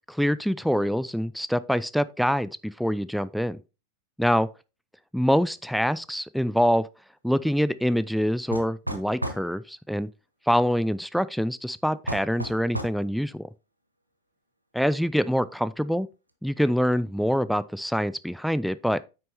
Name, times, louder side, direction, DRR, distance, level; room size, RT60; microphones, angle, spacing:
voice 1, 0.1-3.6 4.2-4.5 5.1-6.9 7.2-10.1 10.5-13.5 14.8-16.1 16.4-19.0, equal, ahead, 0.3 m, -25 dB
sound 1, 8.5-9.5 12.1-13.0, right 1 dB, 85° right, 0.9 m, -32 dB
8.8 x 6.1 x 2.7 m
figure-of-eight pair, 90°, 0 cm